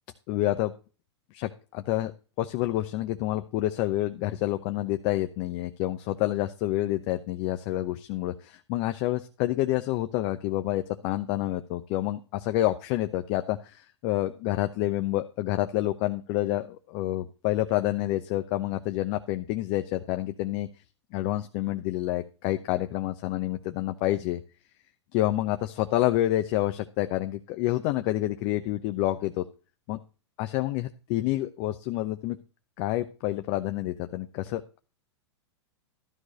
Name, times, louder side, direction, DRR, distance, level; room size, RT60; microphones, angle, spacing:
voice 1, 0.3-0.7 1.3-2.1 2.4-20.7 21.1-24.4 25.1-29.4 29.9-30.0 30.4-32.4 32.8-34.8, left 15 dB, 45° left, 8 dB, 0.9 m, -28 dB
13.0 x 4.8 x 6.4 m, 0.34 s
hypercardioid pair, 110°, 14 cm